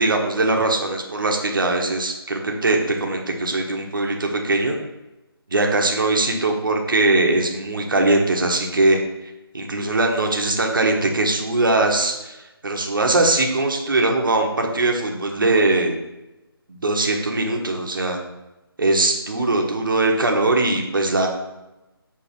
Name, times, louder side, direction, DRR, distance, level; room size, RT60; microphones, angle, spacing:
voice 1, 0.0-4.8 5.5-9.0 9.5-12.4 12.6-16.0 16.7-18.2 18.8-21.3, right 2 dB, 55° right, 2 dB, 1.4 m, -21 dB
6.7 x 4.8 x 6.1 m, 0.98 s
figure-of-eight pair, 155°, 13 cm